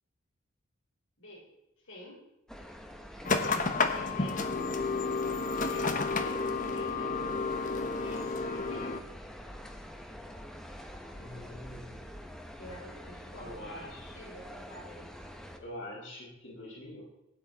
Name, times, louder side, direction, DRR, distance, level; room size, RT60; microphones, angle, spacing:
voice 1, 1.2-1.5 1.8-2.2 3.4-4.6 5.7-7.2 8.0-9.1 12.6-15.1, left 1 dB, 80° left, -4 dB, 5.2 m, -48 dB
sound 1, 2.5-15.6, equal, 5° left, 1.2 m, -46 dB
sound 2, 3.2-9.0, left 4 dB, 40° left, 1.1 m, -31 dB
voice 2, 11.1-12.0 13.4-14.1 15.6-17.0, left 1 dB, 60° left, -4 dB, 5.8 m, -45 dB
17.0 x 10.0 x 4.2 m, 0.92 s
head